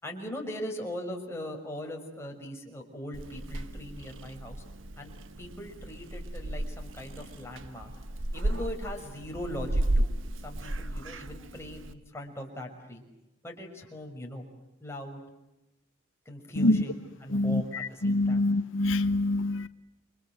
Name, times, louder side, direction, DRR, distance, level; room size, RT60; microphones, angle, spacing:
voice 1, 0.0-4.6 5.0-7.9 8.3-10.1 10.4-13.0 13.4-14.4 14.8-15.2 16.3-18.5, equal, 15° left, 6.1 m, -40 dB
Purr / Meow, 3.1-11.9, right 1 dB, 85° right, 1.4 m, -34 dB
voice 2, 17.3-19.7, left 2 dB, 90° left, 1.1 m, -25 dB
30.0 x 25.5 x 7.9 m
head